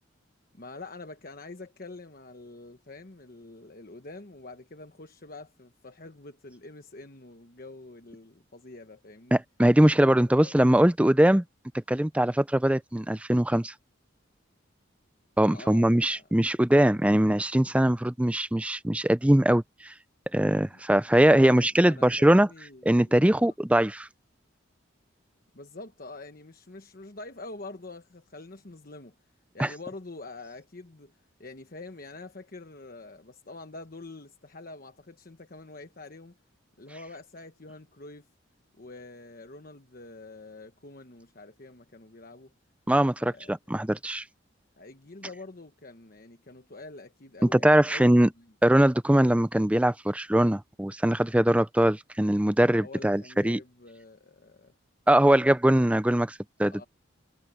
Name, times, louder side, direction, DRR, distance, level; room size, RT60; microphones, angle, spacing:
voice 1, 0.5-9.4 10.3-10.5 15.4-16.3 20.7-23.5 25.5-29.1 29.5-31.1 31.4-36.4 36.8-38.3 38.8-42.5 43.2-43.5 44.8-48.5 52.8-54.7 56.7-56.9, left 2 dB, 45° left, 1.2 m, -46 dB
voice 2, 9.3-11.4 11.7-13.7 15.4-19.9 20.3-22.5 22.8-24.1 29.6-29.7 42.9-44.2 47.4-48.3 48.6-53.6 55.1-56.8, right 1 dB, 5° right, 0.5 m, -22 dB
head